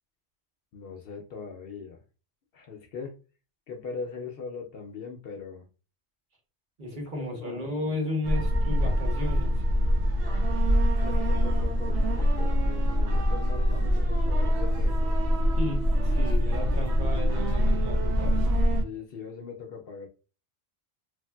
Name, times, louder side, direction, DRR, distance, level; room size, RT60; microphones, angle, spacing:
voice 1, 0.7-2.0 2.5-3.1 3.7-5.7 6.9-8.0 11.0-15.2 18.8-20.1, left 5 dB, 65° left, 3 dB, 0.7 m, -41 dB
voice 2, 6.8-9.5 15.6-18.5, left 1 dB, 50° right, 0 dB, 1.0 m, -34 dB
sound 1, 8.2-18.8, equal, 85° right, 1.0 m, -24 dB
3.1 x 2.6 x 2.2 m, 0.34 s
omnidirectional pair, 1.2 m